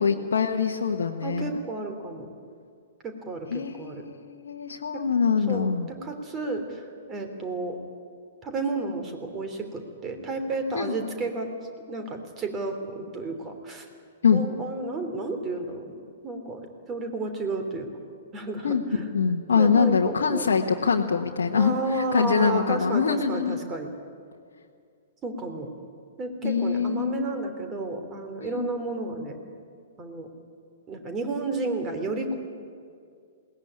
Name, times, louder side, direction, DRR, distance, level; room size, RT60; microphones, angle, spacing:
voice 1, 0.0-1.5 3.5-5.9 10.7-10.9 14.2-14.4 18.6-18.8 19.1-23.6 26.4-27.3 28.4-28.7, left 6 dB, 65° left, 1 dB, 1.3 m, -24 dB
voice 2, 1.2-2.3 3.0-4.0 4.9-5.0 5.5-5.7 6.0-7.8 8.4-11.5 11.9-13.9 14.3-16.0 16.2-17.9 18.3-19.1 19.6-20.5 21.5-23.9 25.2-25.7 26.2-29.4 30.0-30.3 30.9-32.3, right 2 dB, 20° right, 6 dB, 3.4 m, -32 dB
21.0 x 18.0 x 9.9 m, 2.2 s
figure-of-eight pair, 110°, 0 cm